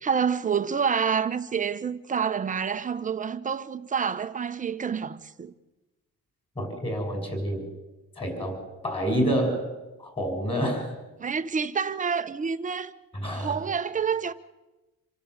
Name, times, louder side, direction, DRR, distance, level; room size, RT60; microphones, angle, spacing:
voice 1, 0.0-5.5 11.2-12.9 13.3-14.3, right 6 dB, 25° right, 1.0 m, -28 dB
voice 2, 6.6-7.7 8.2-9.7 10.0-10.9 13.1-13.5, equal, 15° left, 6.7 m, -28 dB
27.0 x 17.0 x 8.1 m
cardioid pair, 145°, 31 cm